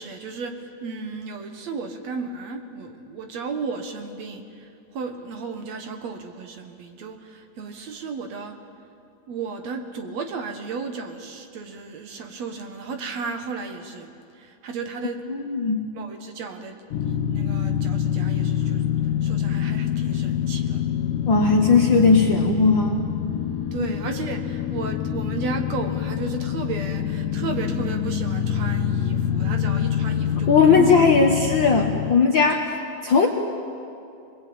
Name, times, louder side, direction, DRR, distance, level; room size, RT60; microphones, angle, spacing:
voice 1, 0.0-8.5 9.3-14.1 14.3-15.2 15.9-16.8 17.0-20.8 23.7-30.9 32.4-32.6, right 4 dB, 60° right, 5 dB, 2.4 m, -34 dB
voice 2, 15.3-15.8 21.3-23.0 30.5-32.6 33.0-33.3, left 4 dB, 50° left, 1 dB, 1.5 m, -18 dB
sound 1, 16.9-32.2, left 9 dB, 80° left, 2.4 m, -26 dB
25.5 x 20.5 x 8.8 m, 2.5 s
omnidirectional pair, 3.7 m